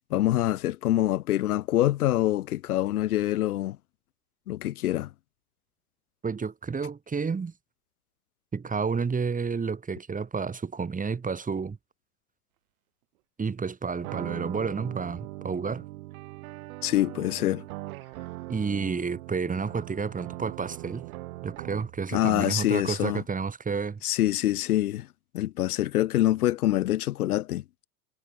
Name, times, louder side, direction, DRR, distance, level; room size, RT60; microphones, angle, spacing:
voice 1, 0.1-3.8 4.5-5.1 16.8-17.7 22.1-23.2 24.0-25.1 25.3-27.6, left 14 dB, 85° left, 5.2 m, -25 dB
voice 2, 6.2-7.5 8.5-11.8 13.4-15.8 18.5-21.0 21.4-24.0, right 5 dB, 20° right, 6.1 m, -30 dB
sound 1, 14.0-22.1, right 20 dB, 70° right, 5.2 m, -40 dB
supercardioid pair, 110°, 43 cm